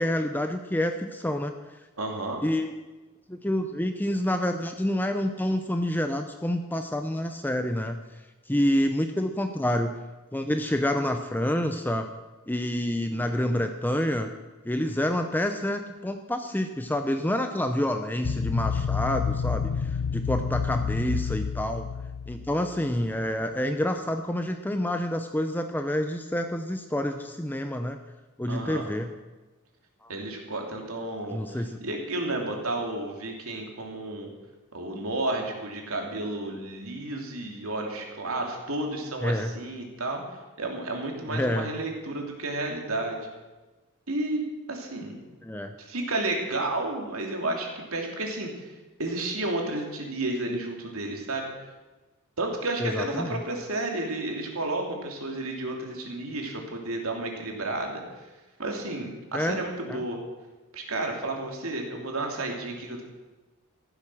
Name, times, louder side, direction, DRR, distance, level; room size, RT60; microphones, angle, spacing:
voice 1, 0.0-1.5 2.4-2.7 3.3-8.0 8.5-9.9 10.3-12.1 12.5-14.3 14.6-21.9 22.3-28.0 28.4-29.1 30.0-30.1 31.3-31.8 39.2-39.5 41.3-41.7 45.4-45.7 52.8-53.4 59.3-59.6 59.9-60.0, left 1 dB, 10° left, 6 dB, 0.7 m, -28 dB
voice 2, 2.0-2.4 28.5-28.8 30.1-34.3 34.7-40.2 40.6-43.3 44.1-45.2 45.8-48.7 49.0-51.5 52.4-58.3 58.6-60.2 60.7-63.0, right 2 dB, 70° right, 1 dB, 3.1 m, -32 dB
sound 1, 18.2-22.9, left 6 dB, 80° left, 0.4 m, -29 dB
15.0 x 12.0 x 6.3 m, 1.2 s
head